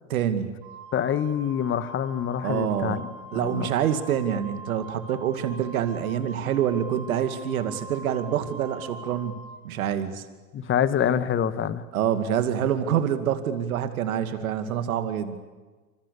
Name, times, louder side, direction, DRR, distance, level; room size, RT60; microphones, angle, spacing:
voice 1, 0.1-0.5 2.4-3.0 3.3-9.4 9.6-10.3 11.9-15.4, right 9 dB, 80° right, 9 dB, 2.4 m, -26 dB
Wind instrument woodwind instrument, 0.6-9.6, right 2 dB, 60° right, 6.9 m, -43 dB
voice 2, 0.9-3.7 10.5-11.8, left 9 dB, 30° left, 13 dB, 1.6 m, -26 dB
28.0 x 26.5 x 7.0 m, 1.3 s
hypercardioid pair, 110°, 42 cm